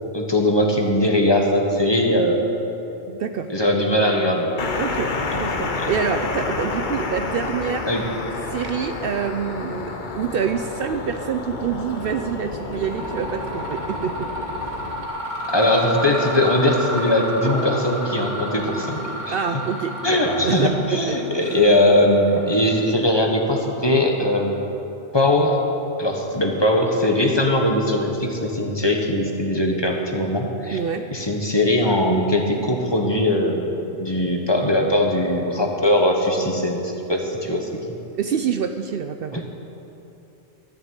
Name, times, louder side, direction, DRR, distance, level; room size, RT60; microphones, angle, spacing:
voice 1, 0.1-2.4 3.5-4.5 5.8-5.9 7.9-8.0 15.5-19.3 20.0-24.6 25.1-25.6 26.0-30.8 31.1-33.7 34.0-37.7 39.3-39.4, left 1 dB, 25° left, 1 dB, 1.3 m, -20 dB
voice 2, 3.1-3.5 4.8-7.9 8.5-14.3 14.7-14.8 19.3-21.5 30.7-31.1 38.2-39.4, right 7 dB, 60° right, 7 dB, 0.7 m, -26 dB
sound 1, 4.6-15.1, left 3 dB, 45° left, 1.1 m, -29 dB
Mechanisms, 11.9-12.2 12.6-23.1, equal, 40° right, 3.0 m, -32 dB
sound 2, 16.1-19.8 21.9-22.5, left 1 dB, 70° left, 1.8 m, -33 dB
14.0 x 7.0 x 8.9 m, 2.9 s
omnidirectional pair, 1.2 m